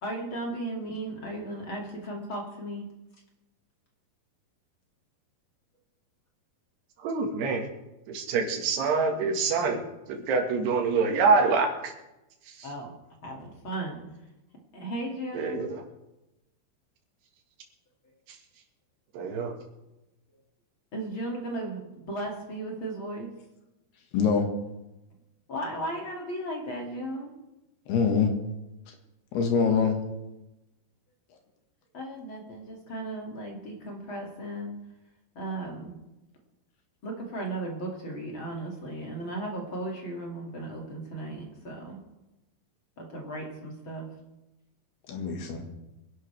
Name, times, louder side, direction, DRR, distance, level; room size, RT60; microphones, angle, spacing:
voice 1, 0.0-2.9 12.6-13.0 13.2-14.0 14.7-15.6 20.9-21.8 22.1-23.3 25.5-27.3 31.9-34.8 35.3-36.0 37.0-42.0 43.0-44.1, right 1 dB, 35° left, -1 dB, 2.8 m, -35 dB
voice 2, 7.0-7.7 8.1-9.8 10.1-11.7 12.5-12.7 15.4-15.8 19.1-19.5, right 4 dB, 85° right, 3 dB, 3.9 m, -25 dB
voice 3, 24.1-24.5 27.9-28.3 28.9-29.0 29.3-30.0 45.1-45.6, left 6 dB, 80° left, 3 dB, 3.8 m, -24 dB
24.5 x 11.5 x 3.5 m, 0.96 s
omnidirectional pair, 4.6 m